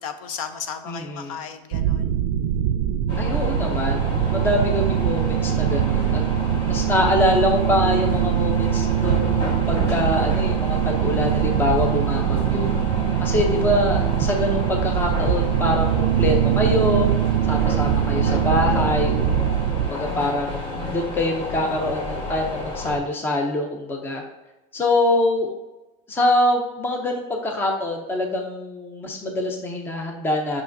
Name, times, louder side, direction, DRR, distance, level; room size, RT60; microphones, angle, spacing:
voice 1, 0.0-2.2, left 7 dB, 85° left, 9 dB, 0.8 m, -34 dB
voice 2, 0.9-1.4 3.1-6.2 6.6-12.7 13.2-17.1 17.4-19.2 19.8-24.2 24.7-25.5 26.1-30.6, left 1 dB, 10° left, 2 dB, 0.6 m, -24 dB
sound 1, 1.7-19.9, right 10 dB, 70° right, 0.5 m, -22 dB
sound 2, 3.1-23.0, left 2 dB, 30° left, 1.5 m, -31 dB
8.2 x 5.9 x 2.6 m, 1.1 s
supercardioid pair, 155°, 17 cm